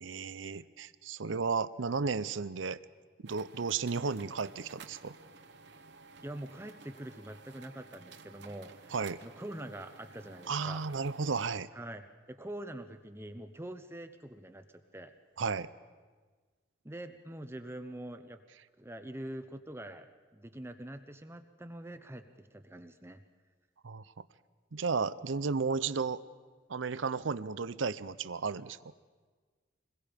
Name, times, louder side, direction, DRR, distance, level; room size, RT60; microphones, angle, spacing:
voice 1, 0.0-2.8 3.2-5.2 8.9-9.2 10.5-11.7 15.4-15.7 23.8-24.0 24.7-26.2 26.7-28.8, right 5 dB, 85° right, 15 dB, 0.7 m, -33 dB
sound 1, 3.3-11.5, right 4 dB, 60° right, 1.1 m, -54 dB
voice 2, 6.2-8.9 9.2-10.8 11.7-14.7 14.9-15.1 16.8-18.4 18.8-20.1 20.3-22.2 22.5-23.2, right 1 dB, 15° right, 8 dB, 0.7 m, -44 dB
27.0 x 21.5 x 5.2 m, 1.4 s
head